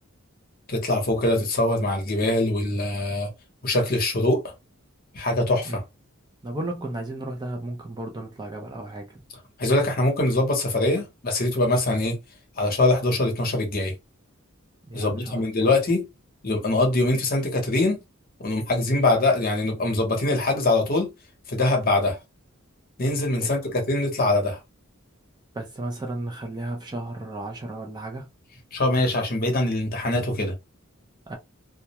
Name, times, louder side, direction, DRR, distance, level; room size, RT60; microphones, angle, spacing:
voice 1, 0.7-3.3 3.6-4.5 5.1-5.8 9.6-12.2 12.6-13.9 14.9-16.1 16.4-18.0 18.4-21.1 21.5-22.2 23.0-24.6 28.7-30.5, left 2 dB, 45° left, 0.8 m, -23 dB
voice 2, 6.4-9.2 14.9-15.7 23.4-23.5 25.5-28.3 31.3-31.4, right 2 dB, 20° right, 0.5 m, -34 dB
2.3 x 2.1 x 2.8 m
head